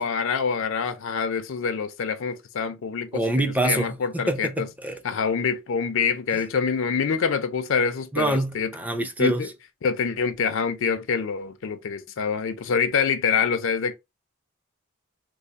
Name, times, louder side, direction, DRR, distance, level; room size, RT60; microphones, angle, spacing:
voice 1, 0.0-3.2 3.6-4.7 5.0-8.7 9.2-9.5 9.8-14.0, left 6 dB, 65° left, 0.5 m, -25 dB
voice 2, 3.1-5.0 8.1-9.5, right 1 dB, 10° right, 0.4 m, -26 dB
3.3 x 2.0 x 3.9 m
head